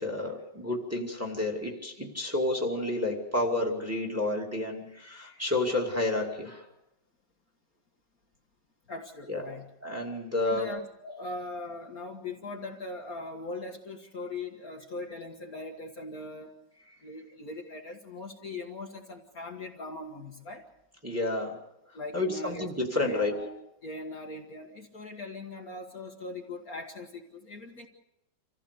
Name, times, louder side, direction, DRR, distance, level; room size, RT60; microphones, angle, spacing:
voice 1, 0.0-6.7 9.3-9.4 9.8-10.7 21.0-21.6 22.1-23.3, left 2 dB, 5° right, 1 dB, 2.4 m, -30 dB
voice 2, 8.9-9.7 10.4-16.5 17.0-20.7 21.9-22.7 23.0-27.9, left 2 dB, 50° left, 1 dB, 1.9 m, -40 dB
26.5 x 15.5 x 6.8 m, 0.88 s
omnidirectional pair, 2.1 m